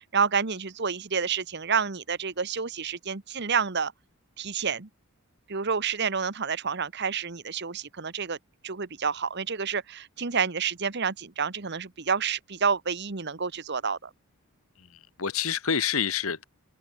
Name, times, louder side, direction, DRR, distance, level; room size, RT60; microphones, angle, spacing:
voice 1, 0.0-3.9 4.4-4.9 5.5-8.4 8.6-14.1, right 6 dB, 50° right, 1.2 m, -29 dB
voice 2, 14.8-16.4, left 7 dB, 75° left, 1.4 m, -28 dB
head